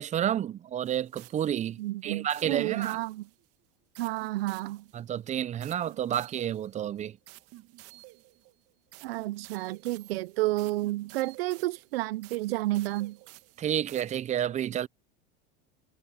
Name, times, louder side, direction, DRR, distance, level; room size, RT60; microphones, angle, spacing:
voice 1, 0.0-3.0 4.9-7.2 13.6-14.9, right 10 dB, 25° right, 0.5 m, -30 dB
sound 1, 0.9-1.8 2.3-3.5 4.0-5.1 5.6-14.2, right 19 dB, 55° right, 1.6 m, -52 dB
voice 2, 1.8-3.3 4.0-4.9 9.0-13.2, right 18 dB, 80° right, 0.7 m, -31 dB
supercardioid pair, 120°, 29 cm